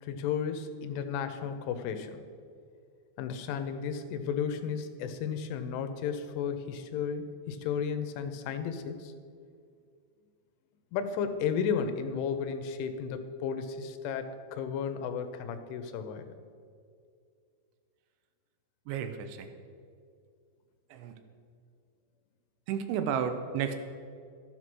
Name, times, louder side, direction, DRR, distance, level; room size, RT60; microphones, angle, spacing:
voice 1, 0.0-2.2 3.2-9.1 10.9-16.3, left 7 dB, 90° left, 9 dB, 3.3 m, -33 dB
voice 2, 18.9-19.5 20.9-21.1 22.7-23.7, right 8 dB, 90° right, 8 dB, 3.1 m, -32 dB
12.5 x 7.9 x 6.1 m, 2.2 s
omnidirectional pair, 5.4 m